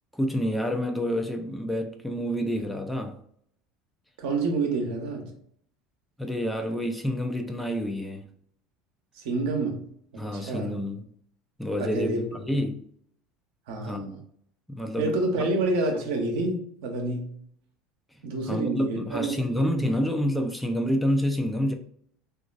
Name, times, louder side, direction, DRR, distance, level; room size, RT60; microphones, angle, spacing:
voice 1, 0.1-3.2 6.2-8.3 10.2-11.1 11.6-12.8 13.8-14.2 14.7-15.1 18.5-21.7, equal, 5° left, 0.5 m, -28 dB
voice 2, 4.2-5.3 9.1-9.8 10.1-10.8 11.8-12.4 13.7-14.2 15.0-17.3 18.2-19.3 19.6-19.7, right 2 dB, 70° right, 0.8 m, -28 dB
2.9 x 2.4 x 2.4 m
hypercardioid pair, 75°, 0 cm